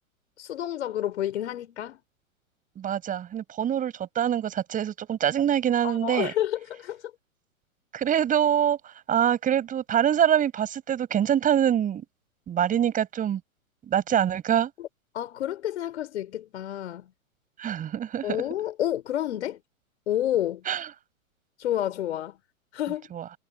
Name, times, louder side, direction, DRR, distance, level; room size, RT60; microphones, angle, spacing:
voice 1, 0.4-2.0 5.8-7.0 14.8-14.9 15.1-17.1 18.2-19.6 20.1-20.6 21.6-22.4 22.7-23.1, left 12 dB, 50° left, 5.9 m, -29 dB
voice 2, 2.8-6.3 7.9-12.0 12.5-13.4 13.8-14.7 17.6-18.4 20.7-20.9 23.1-23.3, right 9 dB, 20° right, 7.8 m, -25 dB
figure-of-eight pair, 115°, 42 cm